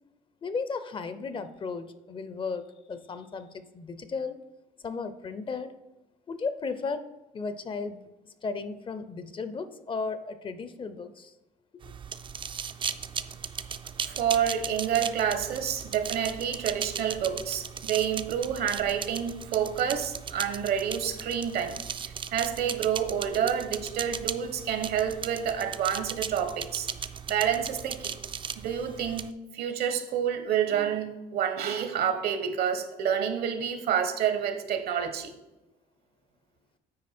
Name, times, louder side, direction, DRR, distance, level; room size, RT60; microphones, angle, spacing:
voice 1, 0.4-4.4 4.8-5.7 6.3-8.0 8.2-11.3 11.7-11.9, left 4 dB, 30° left, 12 dB, 0.5 m, -35 dB
sound 1, 11.8-29.3, right 7 dB, 30° right, 0.4 m, -37 dB
voice 2, 14.0-21.8 22.0-26.9 27.3-28.2 28.6-29.3 29.5-35.3, right 8 dB, 65° right, 9 dB, 1.0 m, -28 dB
8.5 x 4.7 x 4.3 m, 0.99 s
cardioid pair, 110°, 17 cm